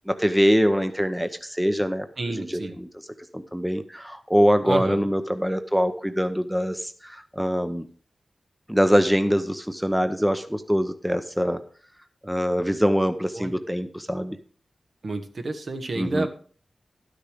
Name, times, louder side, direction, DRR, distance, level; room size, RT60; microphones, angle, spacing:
voice 1, 0.1-2.9 3.3-7.9 8.7-11.6 12.2-14.4 16.0-16.3, equal, 5° right, 9 dB, 0.7 m, -23 dB
voice 2, 2.2-2.8 4.6-5.1 13.4-13.6 15.0-16.3, right 2 dB, 60° right, 6 dB, 1.3 m, -30 dB
12.0 x 6.6 x 5.0 m, 0.43 s
wide cardioid pair, 80°, 0 cm